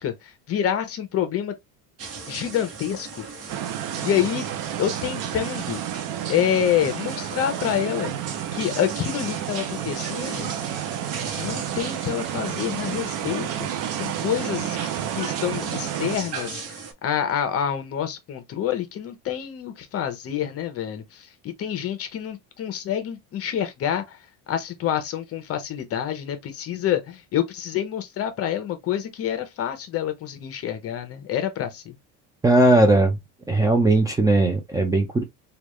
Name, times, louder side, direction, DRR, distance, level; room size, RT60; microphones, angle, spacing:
voice 1, 0.0-1.5 2.3-3.2 4.0-4.4 4.8-5.8 6.3-8.1 8.5-10.5 11.4-13.7 14.0-14.8 15.1-16.6 17.0-24.2 24.5-32.0, left 10 dB, 40° left, 0.8 m, -27 dB
sound 1, 2.0-16.9, right 5 dB, 45° right, 1.0 m, -37 dB
sound 2, 3.5-16.2, right 11 dB, 65° right, 0.6 m, -31 dB
voice 2, 32.4-33.2 33.5-35.2, right 2 dB, 10° right, 0.4 m, -18 dB
3.4 x 2.4 x 3.0 m
cardioid pair, 140°, 35 cm